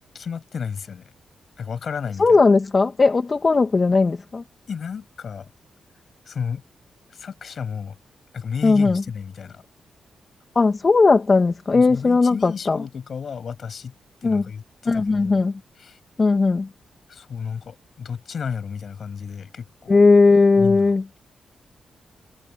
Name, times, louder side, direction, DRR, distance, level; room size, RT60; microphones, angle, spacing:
voice 1, 0.1-1.1 1.6-2.4 4.7-5.5 6.3-6.6 7.1-8.0 8.3-9.6 11.7-13.9 14.2-15.4 15.8-16.0 17.1-20.0 20.6-20.9, left 6 dB, 60° left, 7.5 m, -32 dB
voice 2, 2.2-4.4 8.6-9.0 10.6-12.8 14.2-14.4 14.9-15.6 16.2-16.7 19.9-21.0, left 3 dB, 40° left, 2.2 m, -17 dB
cardioid pair, 70°, 0 cm